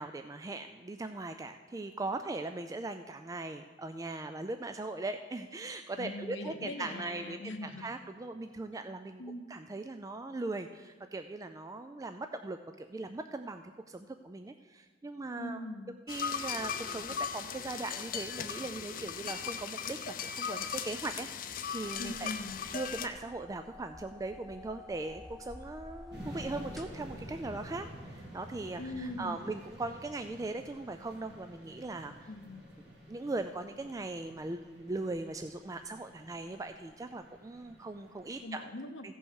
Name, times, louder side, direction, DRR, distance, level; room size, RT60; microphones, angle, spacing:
voice 1, 0.0-9.2 9.5-15.6 16.1-22.3 22.7-32.3 33.1-38.6 39.0-39.1, right 2 dB, 20° right, 7 dB, 0.3 m, -39 dB
voice 2, 5.9-7.9 9.2-9.5 15.4-15.9 22.0-22.6 28.7-29.4 32.3-32.7 38.4-39.1, left 1 dB, 85° left, 8 dB, 0.9 m, -41 dB
sound 1, 16.1-23.1, left 7 dB, 50° left, 0.6 m, -38 dB
sound 2, 21.8-27.3, left 2 dB, ahead, 0.8 m, -51 dB
sound 3, 26.1-38.4, equal, 70° right, 2.3 m, -50 dB
15.5 x 5.5 x 6.4 m, 1.4 s
head